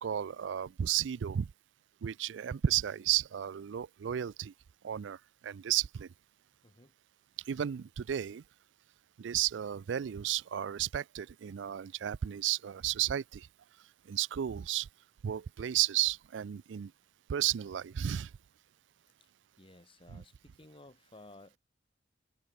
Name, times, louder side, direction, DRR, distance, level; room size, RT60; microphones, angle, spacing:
voice 1, 0.0-1.5 2.0-4.5 4.8-5.2 5.4-6.1 7.5-8.4 9.2-13.5 14.1-14.9 15.2-16.9 17.3-18.3 20.1-20.2, right 11 dB, 80° right, 0.4 m, -33 dB
voice 2, 6.6-6.9 19.2-19.3 19.6-21.6, left 2 dB, 30° left, 2.5 m, -56 dB
head